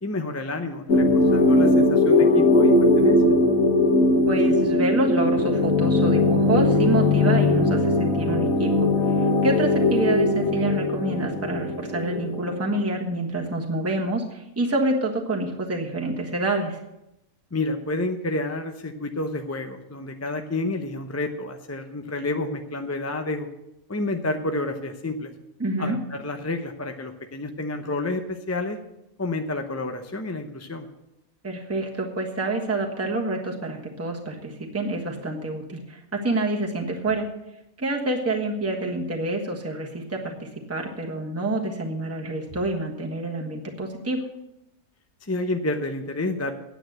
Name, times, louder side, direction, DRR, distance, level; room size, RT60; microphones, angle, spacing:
voice 1, 0.0-3.2 17.5-23.5 23.9-25.3 25.8-28.8 29.2-30.9 45.2-46.5, left 2 dB, 15° left, 5 dB, 0.5 m, -29 dB
sound 1, 0.9-12.8, left 2 dB, 70° left, 1.9 m, -20 dB
voice 2, 4.2-16.8 25.6-26.0 31.4-37.3 37.8-44.2, right 2 dB, 10° right, 0 dB, 1.4 m, -27 dB
9.3 x 8.7 x 7.8 m, 0.88 s
omnidirectional pair, 1.5 m